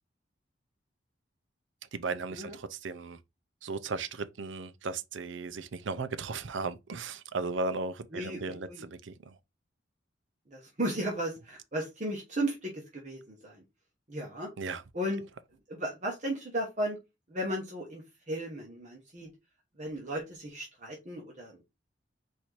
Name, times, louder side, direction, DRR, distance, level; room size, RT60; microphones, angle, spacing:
voice 1, 1.9-3.2 3.6-9.4 14.6-14.8, right 4 dB, 75° right, 0.6 m, -36 dB
voice 2, 8.1-8.8 10.5-13.6 14.1-14.5 14.9-15.2 15.7-17.0 17.3-19.3 19.8-21.6, right 1 dB, 40° right, 1.0 m, -35 dB
4.3 x 2.7 x 4.5 m
head